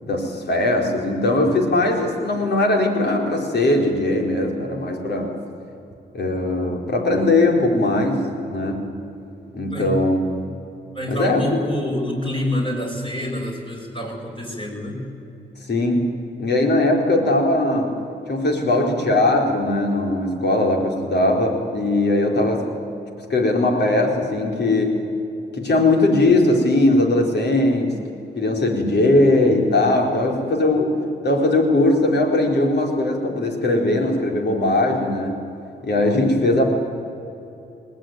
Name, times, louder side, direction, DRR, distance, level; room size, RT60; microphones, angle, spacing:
voice 1, 0.0-5.3 6.1-8.2 8.5-8.9 9.5-10.2 11.1-11.4 15.7-16.1 16.4-17.9 18.3-22.7 23.3-25.0 25.6-28.0 28.4-30.9 31.2-35.4 35.8-36.7, left 2 dB, 55° left, 2 dB, 4.4 m, -19 dB
voice 2, 9.7-10.0 10.9-15.1, left 1 dB, 25° left, 0 dB, 6.7 m, -27 dB
20.5 x 18.0 x 9.3 m, 2.8 s
supercardioid pair, 50°, 20 cm